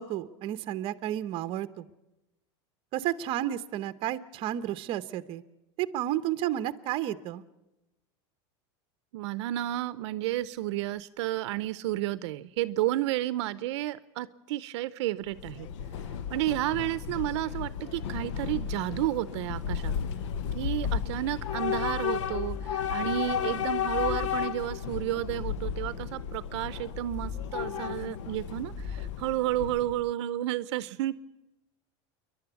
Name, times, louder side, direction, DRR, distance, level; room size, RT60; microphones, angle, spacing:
voice 1, 0.0-1.9 2.9-5.4 5.8-7.4, right 12 dB, 35° right, 12 dB, 0.8 m, -32 dB
voice 2, 9.1-15.7 16.3-19.9 20.5-31.1, right 15 dB, 70° right, 16 dB, 0.7 m, -31 dB
Train / Subway metro underground, 15.3-30.1, left 8 dB, 80° left, 0.9 m, -34 dB
sound 1, 22.0-23.1 23.5-24.6 25.1-26.2 26.7-27.8 28.4-29.5, left 6 dB, 20° left, 4.9 m, -41 dB
28.0 x 11.5 x 8.2 m, 0.98 s
supercardioid pair, 160°, 15 cm